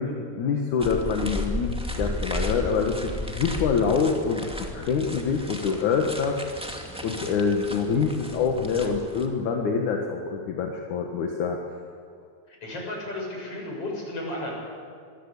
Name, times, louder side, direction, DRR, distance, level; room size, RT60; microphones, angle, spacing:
voice 1, 0.0-4.4 4.7-6.4 7.0-11.6, left 5 dB, 55° left, 2 dB, 2.6 m, -25 dB
sound 1, 0.8-9.3, equal, 5° right, 1.0 m, -34 dB
voice 2, 12.5-14.5, left 1 dB, 35° left, 0 dB, 7.4 m, -33 dB
26.5 x 22.0 x 8.4 m, 2.2 s
omnidirectional pair, 4.7 m